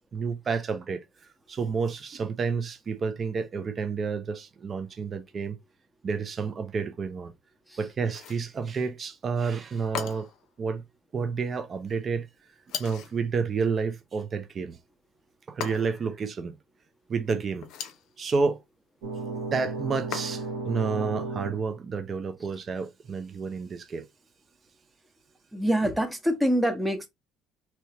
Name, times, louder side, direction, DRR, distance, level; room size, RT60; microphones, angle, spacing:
voice 1, 0.1-1.0 1.5-5.6 6.0-7.3 7.8-10.3 10.6-10.8 11.1-12.3 12.8-14.8 15.5-16.5 17.1-17.7 18.2-18.6 19.5-24.0, right 5 dB, 45° right, 0.6 m, -30 dB
sound 1, 8.1-8.5 9.9-10.5 12.7-13.2 15.6-16.1 17.6-18.1 20.1-20.6, left 8 dB, 70° left, 0.6 m, -37 dB
sound 2, 19.0-21.7, right 3 dB, 85° right, 1.1 m, -34 dB
voice 2, 25.5-27.1, equal, 10° right, 1.1 m, -25 dB
3.1 x 2.9 x 2.8 m
supercardioid pair, 70°, 0 cm